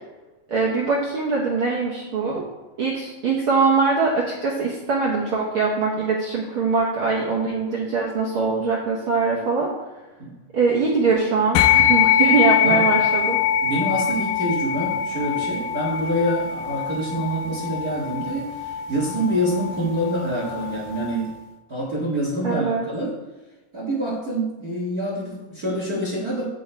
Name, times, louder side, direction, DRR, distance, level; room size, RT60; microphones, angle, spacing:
voice 1, 0.5-2.4 2.8-9.7 10.5-13.4 22.4-22.9, right 4 dB, 70° right, -3 dB, 1.2 m, -22 dB
sound 1, 11.6-21.2, left 9 dB, 85° left, 2.2 m, -23 dB
voice 2, 13.6-21.3 21.7-23.1 23.7-26.4, right 1 dB, 40° right, -5 dB, 1.5 m, -26 dB
8.4 x 6.3 x 4.6 m, 1.1 s
omnidirectional pair, 3.9 m